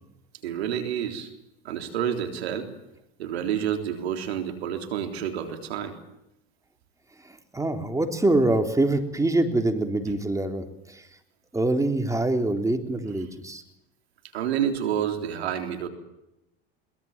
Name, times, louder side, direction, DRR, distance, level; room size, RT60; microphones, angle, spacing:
voice 1, 0.4-1.3 1.6-2.7 3.2-6.0 14.3-15.9, right 9 dB, 85° right, 6 dB, 3.6 m, -29 dB
voice 2, 7.2-11.1 11.5-13.6, right 2 dB, 10° right, 5 dB, 3.6 m, -25 dB
22.5 x 21.0 x 7.4 m, 0.89 s
hypercardioid pair, 85°, 31 cm